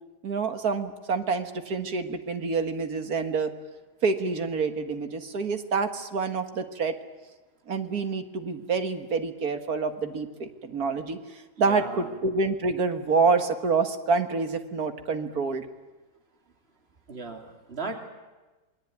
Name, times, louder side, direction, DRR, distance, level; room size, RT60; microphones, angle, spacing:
voice 1, 0.2-3.5 4.0-7.0 7.7-15.7, right 4 dB, 90° right, 8 dB, 2.2 m, -27 dB
voice 2, 11.6-12.0 17.1-18.0, right 4 dB, 45° right, 4 dB, 3.1 m, -36 dB
28.0 x 21.5 x 9.4 m, 1.2 s
omnidirectional pair, 1.5 m